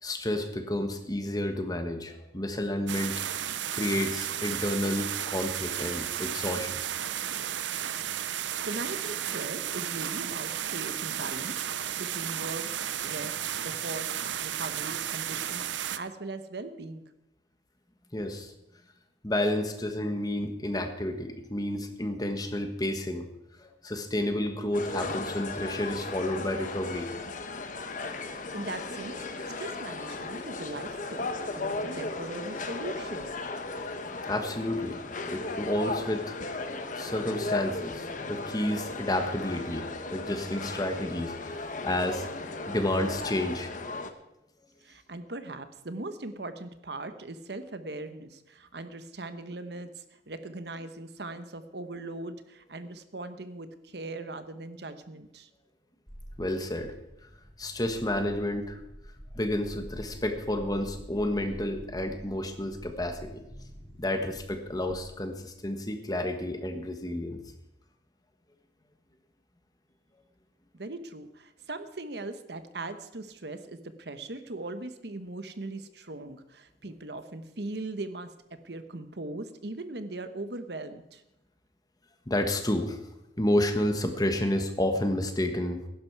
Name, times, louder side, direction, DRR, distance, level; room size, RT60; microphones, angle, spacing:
voice 1, 0.0-3.2 3.7-6.8 18.1-18.5 19.2-23.3 23.6-27.1 34.3-35.0 35.3-36.4 36.7-42.3 42.7-43.7 56.4-56.9 57.6-58.8 59.3-63.4 64.0-67.4 82.3-83.0 83.4-85.8, left 1 dB, 20° left, 6 dB, 1.4 m, -30 dB
sound 1, 2.9-16.0, right 10 dB, 85° right, 0.7 m, -33 dB
voice 2, 8.4-13.4 13.6-14.1 14.4-15.7 15.9-17.0 28.4-33.2 44.8-55.5 70.7-81.2, right 2 dB, 65° right, 10 dB, 1.1 m, -40 dB
sound 2, 24.7-44.1, left 3 dB, 45° left, 1.1 m, -36 dB
sound 3, 56.1-65.4, equal, ahead, 2.2 m, -47 dB
16.0 x 11.5 x 4.7 m, 0.90 s
head